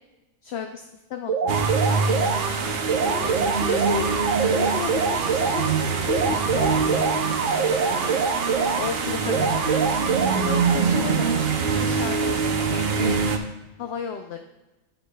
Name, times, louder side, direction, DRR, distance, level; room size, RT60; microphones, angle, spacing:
voice 1, 0.4-1.3 1.6-2.0 3.0-3.3 3.6-4.1 4.5-8.1 8.6-11.5 11.8-13.2 13.8-14.4, left 7 dB, 65° left, 4 dB, 0.8 m, -34 dB
sound 1, 1.3-2.5 2.9-5.7 6.1-8.9 9.3-10.9, right 5 dB, 75° right, 1.2 m, -25 dB
sound 2, 1.5-13.4, right 5 dB, 55° right, 0.8 m, -24 dB
9.4 x 9.0 x 2.3 m, 1.0 s
omnidirectional pair, 1.3 m